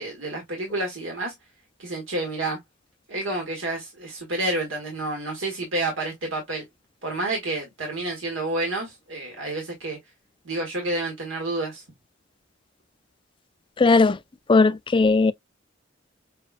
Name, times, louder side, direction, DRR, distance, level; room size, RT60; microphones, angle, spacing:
voice 1, 0.0-1.3 1.8-2.6 3.1-6.6 7.0-10.0 10.4-11.8, right 2 dB, 85° right, 1.5 m, -29 dB
voice 2, 13.8-14.2 14.5-15.3, left 3 dB, 25° left, 0.4 m, -17 dB
6.5 x 2.3 x 2.4 m
head